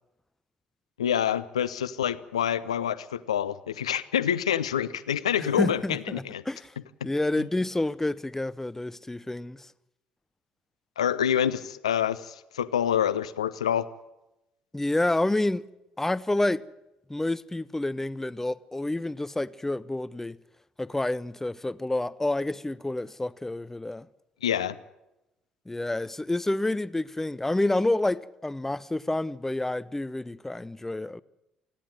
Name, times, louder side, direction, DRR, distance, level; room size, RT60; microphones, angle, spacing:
voice 1, 1.0-6.4 7.4-7.5 11.0-13.9 24.4-24.8, left 9 dB, 80° left, 0.6 m, -27 dB
voice 2, 5.6-6.7 7.0-9.7 14.7-15.6 16.0-16.6 17.1-20.4 20.8-24.1 25.7-31.2, left 2 dB, 10° left, 0.7 m, -28 dB
28.0 x 10.5 x 9.1 m
figure-of-eight pair, 50°, 3 cm